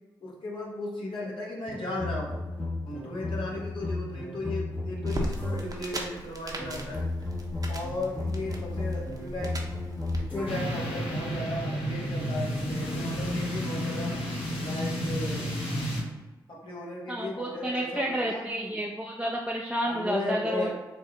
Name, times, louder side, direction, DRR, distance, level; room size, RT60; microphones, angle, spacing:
voice 1, 0.2-2.3 2.8-7.0 7.7-9.7 10.1-14.2 14.6-15.5 16.5-18.8 19.8-20.7, left 1 dB, 60° left, -3 dB, 1.4 m, -36 dB
sound 1, 1.7-5.9 6.6-10.8, left 2 dB, 15° left, 0.9 m, -34 dB
sound 2, 5.0-10.2, right 1 dB, 40° right, 0.9 m, -38 dB
sound 3, 10.5-16.0, equal, 80° left, 1.0 m, -31 dB
voice 2, 17.1-20.7, equal, 10° right, -2 dB, 0.5 m, -30 dB
4.3 x 2.1 x 3.6 m, 1.1 s
supercardioid pair, 40°, 9 cm